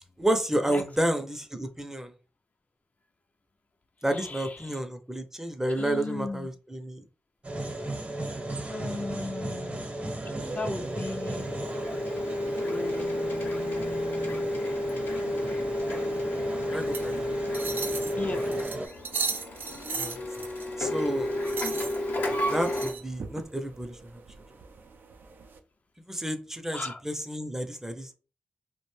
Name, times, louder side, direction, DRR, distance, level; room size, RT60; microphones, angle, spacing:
voice 1, 0.2-2.1 4.0-7.0 16.7-17.2 20.0-20.2 20.8-21.3 22.5-24.0 26.1-28.1, right 1 dB, 10° right, 7 dB, 0.6 m, -30 dB
voice 2, 4.1-4.8 5.7-6.5 8.7-9.9 10.2-11.5 12.6-14.5 18.2-18.7 26.7-27.0, left 3 dB, 50° left, 5 dB, 0.4 m, -37 dB
sound 1, 7.4-18.9, right 1 dB, 40° right, 0.8 m, -36 dB
Printer, 10.4-22.9, left 1 dB, 85° left, 0.8 m, -31 dB
sound 2, 16.8-25.6, right 5 dB, 70° right, 0.4 m, -38 dB
2.5 x 2.2 x 3.1 m, 0.34 s
cardioid pair, 45°, 3 cm